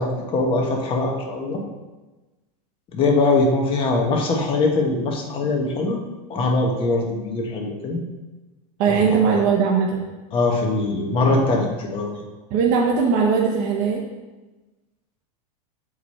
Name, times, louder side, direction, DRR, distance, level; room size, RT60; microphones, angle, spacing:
voice 1, 0.0-1.6 2.9-6.0 6.3-8.0 8.9-9.4 10.3-12.2, left 2 dB, 25° left, 0 dB, 1.2 m, -22 dB
voice 2, 8.8-10.1 12.5-14.0, right 6 dB, 40° right, -1 dB, 0.9 m, -19 dB
7.1 x 4.9 x 4.3 m, 1.1 s
supercardioid pair, 155°, 20 cm